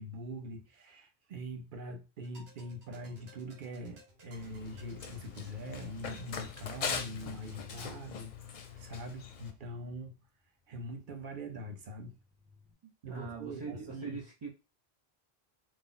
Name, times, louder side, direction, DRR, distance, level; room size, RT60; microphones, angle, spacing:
voice 1, 0.0-10.2 10.7-12.2 13.0-14.2, right 1 dB, 55° right, 0.8 m, -43 dB
sound 1, 2.2-7.6, equal, 80° right, 1.2 m, -59 dB
Run, 4.3-9.5, left 6 dB, 55° left, 0.5 m, -41 dB
sound 2, 4.9-10.3 10.9-12.7, left 5 dB, 5° right, 0.8 m, -58 dB
voice 2, 12.8-14.5, right 5 dB, 35° right, 0.4 m, -42 dB
2.6 x 2.0 x 3.7 m
omnidirectional pair, 1.1 m